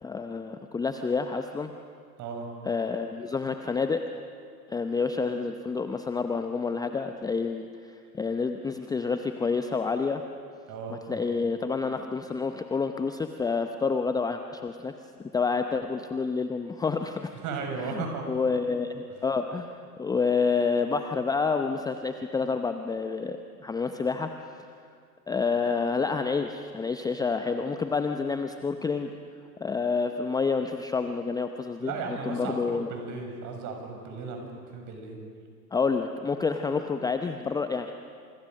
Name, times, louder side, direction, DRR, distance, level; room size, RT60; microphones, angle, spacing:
voice 1, 0.0-1.7 2.6-4.0 4.7-10.2 10.9-14.9 15.3-17.3 17.9-24.3 24.6-24.8 25.3-29.1 29.6-31.9 32.2-32.9 35.7-37.9, left 4 dB, 10° left, 7 dB, 0.7 m, -28 dB
voice 2, 2.2-2.5 10.7-11.3 17.4-18.2 31.8-34.5 34.7-35.2, right 4 dB, 35° right, 3 dB, 6.7 m, -35 dB
29.0 x 28.0 x 6.5 m, 2.2 s
figure-of-eight pair, 100°, 50 cm